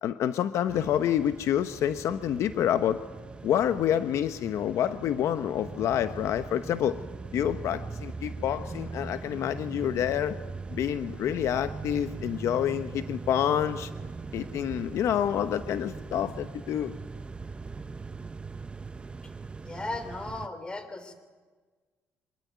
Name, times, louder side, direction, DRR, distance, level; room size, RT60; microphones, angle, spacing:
voice 1, 0.0-3.0 3.4-7.0 7.3-10.4 10.7-13.9 14.3-16.9, left 10 dB, 70° left, 11 dB, 0.9 m, -28 dB
sound 1, 0.7-20.5, right 4 dB, 20° right, 0.7 m, -40 dB
voice 2, 19.6-21.1, left 2 dB, 20° left, 10 dB, 3.2 m, -36 dB
25.0 x 20.5 x 9.4 m, 1.4 s
cardioid pair, 130°, 5 cm